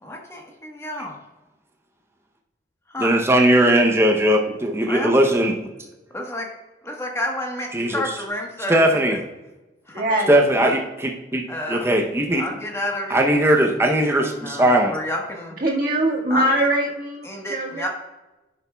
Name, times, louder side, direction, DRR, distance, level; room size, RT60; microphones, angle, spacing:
voice 1, 0.0-1.1 2.9-3.1 4.9-5.1 6.1-6.5 6.8-8.8 9.9-10.0 10.6-10.7 11.5-11.9 12.3-13.2 14.2-15.6 16.3-16.4 17.2-17.9, left 1 dB, 15° left, 1 dB, 1.2 m, -30 dB
voice 2, 3.0-5.5 7.7-8.0 8.7-9.2 10.3-11.4 11.7-12.4 13.1-14.9, right 1 dB, 15° right, 1 dB, 0.6 m, -18 dB
voice 3, 9.9-10.3 13.2-13.3 15.6-17.9, right 1 dB, 50° right, -2 dB, 1.7 m, -22 dB
10.5 x 6.9 x 2.2 m, 1.1 s
head